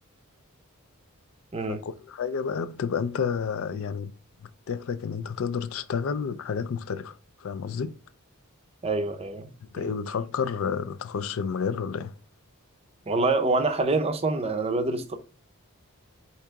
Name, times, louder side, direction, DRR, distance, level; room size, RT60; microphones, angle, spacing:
voice 1, 1.7-4.1 4.4-7.9 9.6-12.1, left 6 dB, 65° left, 0.4 m, -30 dB
voice 2, 8.8-9.5 9.8-9.9 13.1-15.2, right 3 dB, 25° right, 0.5 m, -26 dB
4.6 x 2.9 x 3.6 m
head